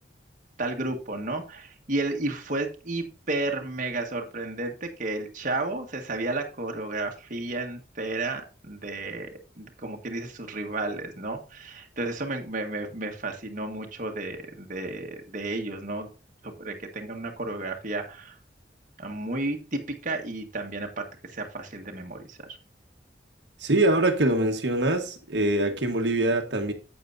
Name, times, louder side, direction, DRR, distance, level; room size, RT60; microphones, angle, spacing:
voice 1, 0.6-9.3 9.6-16.1 16.4-18.4 19.0-21.0 21.3-22.4, right 2 dB, 45° right, 1.7 m, -32 dB
voice 2, 23.6-26.7, right 1 dB, 75° right, 1.4 m, -24 dB
9.0 x 8.6 x 2.7 m
head